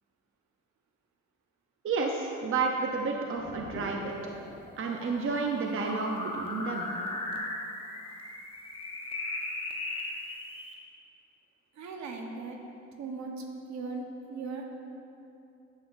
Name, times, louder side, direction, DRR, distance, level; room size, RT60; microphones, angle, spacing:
voice 1, 1.8-4.1 4.8-6.9, right 4 dB, 45° right, 1 dB, 0.7 m, -31 dB
sound 1, 3.3-10.7, left 2 dB, 20° left, 1.0 m, -38 dB
voice 2, 11.7-12.6 13.0-14.7, right 4 dB, 65° right, 2 dB, 1.0 m, -38 dB
10.5 x 7.9 x 2.6 m, 2.7 s
cardioid pair, 90°, 30 cm